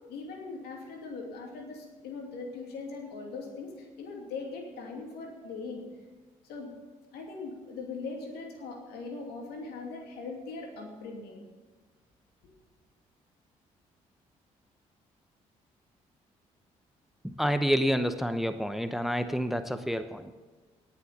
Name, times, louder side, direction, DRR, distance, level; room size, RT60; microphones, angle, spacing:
voice 1, 0.1-5.8 6.4-6.8 7.1-11.4, left 4 dB, 75° left, 1 dB, 2.7 m, -40 dB
voice 2, 17.2-20.3, equal, ahead, 10 dB, 0.9 m, -28 dB
18.0 x 7.1 x 6.9 m, 1.3 s
hypercardioid pair, 45°, 17 cm